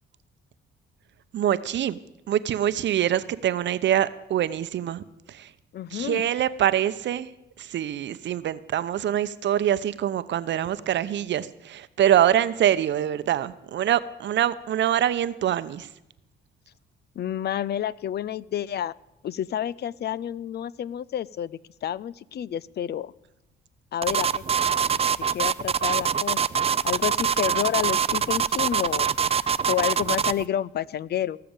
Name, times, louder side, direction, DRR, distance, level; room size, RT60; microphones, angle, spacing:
voice 1, 1.3-2.0 2.3-5.0 5.3-5.5 5.9-7.3 7.6-15.9, right 11 dB, 65° right, 14 dB, 0.8 m, -24 dB
voice 2, 5.7-6.2 17.2-18.9 19.2-21.5 21.8-23.1 23.9-24.4 24.8-26.4 26.8-31.4, left 10 dB, 55° left, 21 dB, 0.5 m, -29 dB
sound 1, 24.0-30.4, right 7 dB, 30° right, 0.5 m, -24 dB
19.0 x 6.8 x 8.9 m, 0.89 s
cardioid pair, 90°, 20 cm